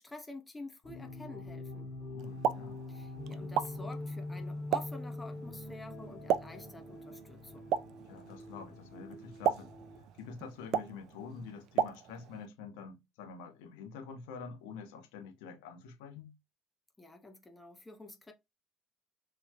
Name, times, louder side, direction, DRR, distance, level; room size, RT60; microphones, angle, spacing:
voice 1, 0.0-1.9 2.9-7.7 17.0-18.3, left 2 dB, 20° left, 0.9 m, -49 dB
sound 1, 0.8-10.0, left 2 dB, 40° left, 1.9 m, -44 dB
voice 2, 2.1-2.8 8.0-9.7 10.2-16.3, left 5 dB, 70° left, 1.3 m, -47 dB
Explosion, 2.2-12.5, right 8 dB, 60° right, 0.4 m, -37 dB
4.0 x 2.8 x 2.2 m
figure-of-eight pair, 55°, 0 cm